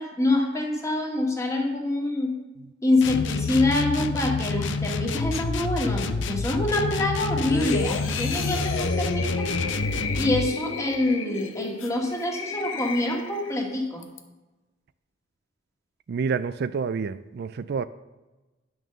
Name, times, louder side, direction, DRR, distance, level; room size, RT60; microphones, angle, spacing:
voice 1, 0.0-2.3 2.8-9.5 10.2-14.0, left 2 dB, 15° left, 0 dB, 1.9 m, -26 dB
sound 1, 3.0-10.5, left 4 dB, 65° left, 0.6 m, -28 dB
sound 2, 7.5-13.6 14.0-14.2, left 4 dB, 80° left, 0.9 m, -32 dB
voice 2, 16.1-17.8, right 5 dB, 55° right, 13 dB, 0.3 m, -28 dB
10.5 x 6.3 x 6.6 m, 1.1 s
head